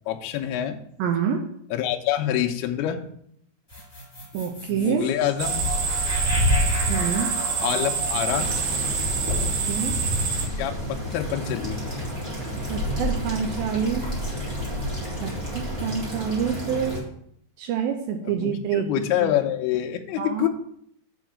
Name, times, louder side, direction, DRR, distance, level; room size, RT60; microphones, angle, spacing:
voice 1, 0.1-0.8 1.7-3.0 4.7-5.7 7.6-8.5 10.6-11.8 18.2-20.5, left 11 dB, 80° left, 4 dB, 2.5 m, -26 dB
voice 2, 1.0-1.4 4.3-5.1 6.9-7.3 9.4-10.0 12.7-14.1 15.2-17.0 17.6-18.8 19.2-19.3 20.2-20.5, right 8 dB, 90° right, 4 dB, 2.0 m, -27 dB
sound 1, 3.7-10.0, equal, 5° left, 3.0 m, -36 dB
sound 2, 5.4-10.5, right 3 dB, 75° right, 1.8 m, -25 dB
sound 3, 8.3-17.0, equal, 40° right, 0.8 m, -30 dB
7.9 x 4.7 x 6.1 m, 0.69 s
omnidirectional pair, 5.0 m